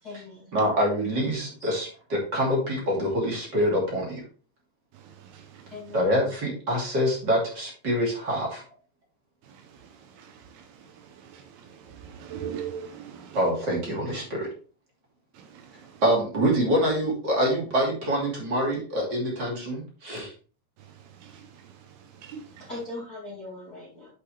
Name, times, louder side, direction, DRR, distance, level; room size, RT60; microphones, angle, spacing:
voice 1, 0.0-0.5 1.6-1.7 5.7-6.0 22.6-24.1, left 2 dB, 30° left, 2.0 m, -40 dB
voice 2, 0.5-4.2 5.9-8.6 13.3-14.5 16.0-20.3, equal, 30° right, 2.7 m, -25 dB
voice 3, 4.9-5.7 9.4-13.4 15.3-16.0 20.9-22.7, right 8 dB, 75° right, 2.7 m, -42 dB
9.9 x 5.4 x 3.3 m
omnidirectional pair, 4.7 m